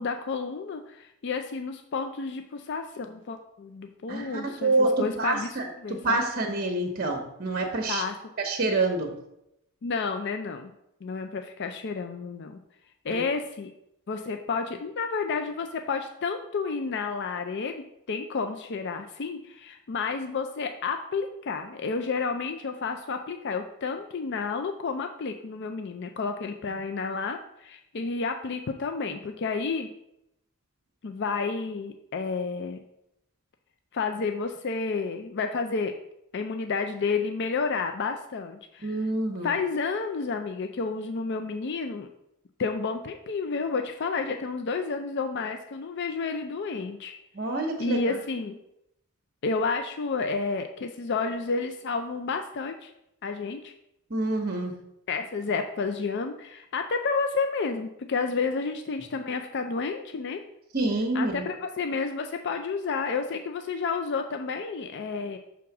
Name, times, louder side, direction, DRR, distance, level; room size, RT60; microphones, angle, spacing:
voice 1, 0.0-6.2 7.9-8.1 9.8-10.7 11.0-12.6 13.0-13.7 14.1-29.9 31.0-32.8 33.9-35.9 36.3-39.0 39.4-42.1 42.6-47.1 47.5-48.6 49.4-52.9 53.2-53.7 55.1-60.4 61.1-65.4, left 4 dB, 50° left, 6 dB, 0.4 m, -31 dB
voice 2, 4.1-5.7 6.0-8.0 8.4-9.1 13.1-13.2 38.8-39.5 47.3-48.2 54.1-54.7 60.7-61.5, right 2 dB, 40° right, 3 dB, 0.9 m, -27 dB
6.2 x 3.5 x 5.9 m, 0.80 s
head